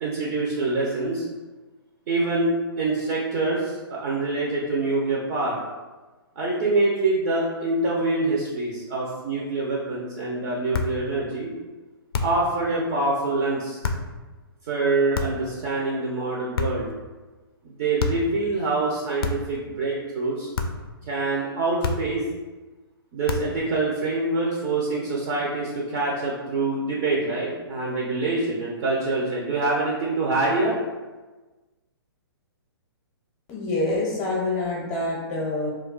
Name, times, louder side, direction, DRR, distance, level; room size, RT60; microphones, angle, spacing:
voice 1, 0.0-1.3 2.1-5.6 6.4-11.5 12.2-13.8 14.6-16.9 17.6-20.5 21.0-22.3 23.1-30.8, right 2 dB, 40° right, -4 dB, 0.5 m, -25 dB
sound 1, 10.7-11.0 12.1-12.5 13.8-14.1 15.1-15.5 16.5-17.0 18.0-18.3 19.2-19.6 20.5-20.9 21.8-22.2 23.3-23.6, left 4 dB, 65° left, 0.4 m, -28 dB
voice 2, 33.5-35.7, left 2 dB, 20° left, -5 dB, 0.6 m, -26 dB
2.3 x 2.2 x 3.7 m, 1.2 s
hypercardioid pair, 130°, 13 cm